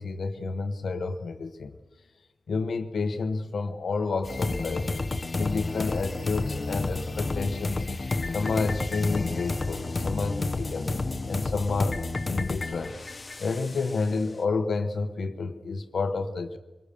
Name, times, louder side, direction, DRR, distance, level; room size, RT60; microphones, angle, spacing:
voice 1, 0.0-1.8 2.5-4.9 5.4-7.9 8.3-11.0 11.3-12.0 12.3-13.0 13.4-16.6, left 4 dB, 80° left, 8 dB, 1.2 m, -30 dB
sound 1, 4.2-14.1, left 3 dB, 40° left, 1.1 m, -30 dB
25.0 x 20.0 x 6.9 m, 1.2 s
wide cardioid pair, 100°, 0 cm